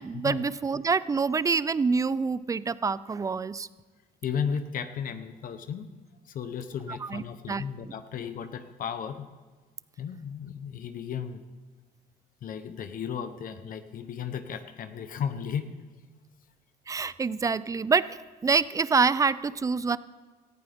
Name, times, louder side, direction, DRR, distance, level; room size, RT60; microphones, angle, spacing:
voice 1, 0.0-3.7 7.0-7.6 16.9-18.2 18.4-20.0, right 5 dB, 20° right, 17 dB, 0.4 m, -26 dB
voice 2, 4.2-5.9 6.2-9.3 10.0-11.4 12.4-15.7, left 7 dB, 55° left, 9 dB, 0.9 m, -34 dB
18.0 x 14.5 x 3.6 m, 1.4 s
cardioid pair, 110°, 17 cm